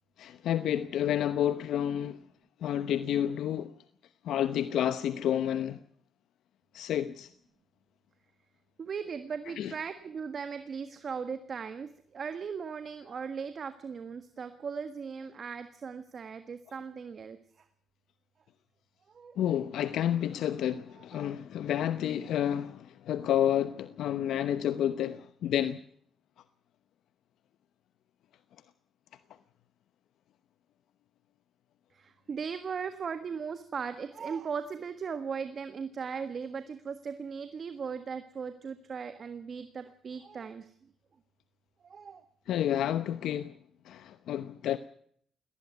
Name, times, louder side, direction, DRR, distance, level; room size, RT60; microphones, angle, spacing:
voice 1, 0.2-2.2 2.6-3.7 4.2-5.8 6.7-7.3 9.6-9.7 19.4-25.8 42.5-43.5 43.8-44.8, left 10 dB, 75° left, 0.9 m, -30 dB
voice 2, 8.8-17.6 19.1-19.4 21.0-21.3 31.9-40.7 41.8-42.2, right 6 dB, 50° right, 1.5 m, -38 dB
19.0 x 17.0 x 9.6 m
cardioid pair, 90°, 0 cm